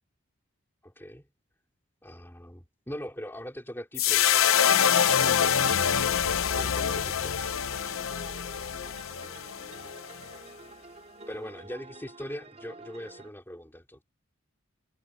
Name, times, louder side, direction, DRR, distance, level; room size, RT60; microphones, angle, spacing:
voice 1, 0.8-1.2 2.0-4.6 6.5-7.6 11.3-14.0, equal, 10° left, 3.1 m, -41 dB
sound 1, 4.0-10.3, left 8 dB, 75° left, 0.7 m, -25 dB
sound 2, 4.1-13.3, right 2 dB, 30° right, 3.6 m, -49 dB
head